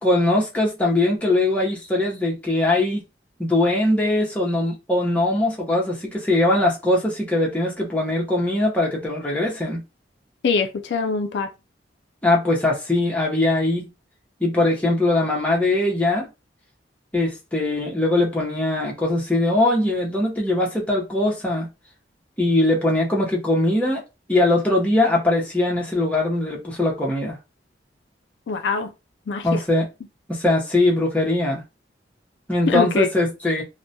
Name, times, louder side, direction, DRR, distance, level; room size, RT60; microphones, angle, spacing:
voice 1, 0.0-3.1 3.4-9.8 12.2-13.9 14.4-16.3 17.1-21.7 22.4-24.0 24.3-27.4 29.4-29.9 30.3-31.6 32.5-33.6, left 2 dB, 10° left, 0.7 m, -21 dB
voice 2, 10.4-11.5 28.5-28.9 29.3-29.6 32.7-33.1, left 5 dB, 75° left, 0.4 m, -23 dB
2.2 x 2.1 x 2.6 m
head